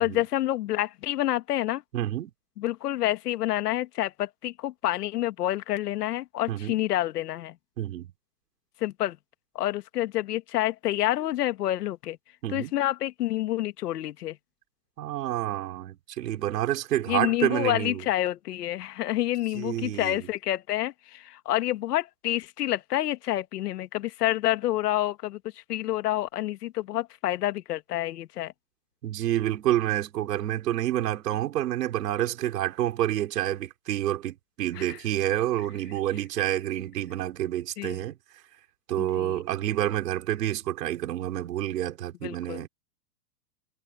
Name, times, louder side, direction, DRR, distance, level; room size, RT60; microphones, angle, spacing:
voice 1, 0.0-1.8 2.6-7.6 8.8-9.2 9.6-12.2 12.5-14.4 17.1-28.5 34.8-35.0 37.8-38.1 39.0-39.4 42.2-42.7, left 14 dB, 75° left, 1.7 m, -28 dB
voice 2, 1.9-2.3 6.5-6.8 7.8-8.1 12.4-12.7 15.0-18.0 19.5-20.3 29.0-38.2 38.9-42.7, right 13 dB, 80° right, 4.6 m, -28 dB
supercardioid pair, 175°, 48 cm